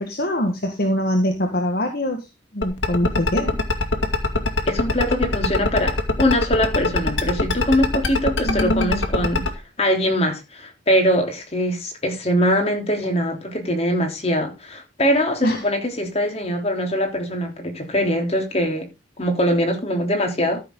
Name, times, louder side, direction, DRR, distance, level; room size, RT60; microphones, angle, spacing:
voice 1, 0.0-2.2 2.5-3.5 8.4-9.0 15.4-15.6, equal, 55° left, 1.7 m, -23 dB
sound 1, 2.6-9.5, left 2 dB, 75° left, 2.3 m, -21 dB
voice 2, 4.7-9.5 9.8-18.9 19.2-20.6, equal, 35° left, 3.5 m, -22 dB
13.5 x 6.9 x 3.9 m
head